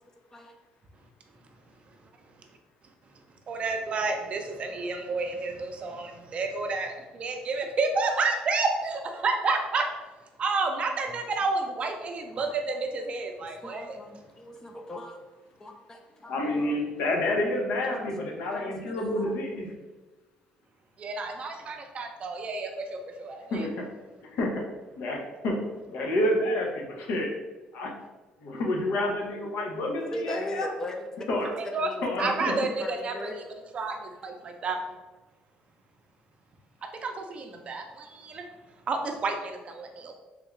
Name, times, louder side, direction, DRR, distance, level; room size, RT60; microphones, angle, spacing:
voice 1, 3.5-9.9 10.4-14.0 21.0-23.7 31.6-31.9 32.2-33.4 33.7-34.8 37.0-38.4 38.9-40.1, right 3 dB, 40° right, 4 dB, 0.5 m, -30 dB
voice 2, 13.6-15.2 15.6-16.7 17.9-18.1 18.5-19.4 30.0-33.3, left 1 dB, 20° left, 3 dB, 0.4 m, -39 dB
voice 3, 16.3-19.7 23.5-23.7 24.4-24.5 25.0-25.5 25.9-27.3 27.7-27.9 28.4-30.7 31.3-31.5 32.0-32.5, left 1 dB, 75° left, 0 dB, 0.7 m, -28 dB
3.5 x 2.3 x 3.1 m, 1.2 s
cardioid pair, 120°, 3 cm